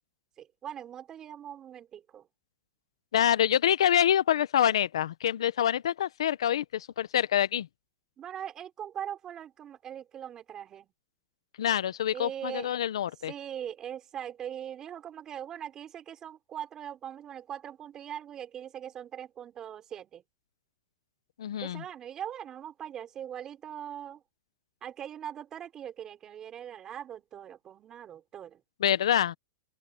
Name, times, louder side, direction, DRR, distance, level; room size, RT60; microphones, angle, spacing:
voice 1, 0.4-2.3 8.2-10.9 12.1-12.8 13.3-20.2 21.6-24.2 24.8-28.6, right 10 dB, 20° right, 5.4 m, -41 dB
voice 2, 3.1-7.7 11.6-13.3 21.4-21.8 28.8-29.3, left 10 dB, 90° left, 0.7 m, -26 dB
open air
supercardioid pair, 160°, 3 cm